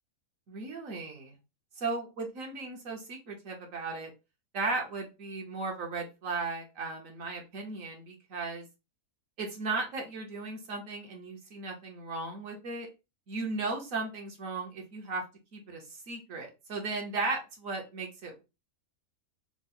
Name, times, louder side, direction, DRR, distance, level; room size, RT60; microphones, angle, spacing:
voice 1, 0.5-1.4 1.8-4.1 4.5-8.6 9.4-12.9 13.3-15.2 15.5-18.4, right 3 dB, 60° right, 1 dB, 1.2 m, -36 dB
3.6 x 2.0 x 4.1 m, 0.27 s
omnidirectional pair, 1.6 m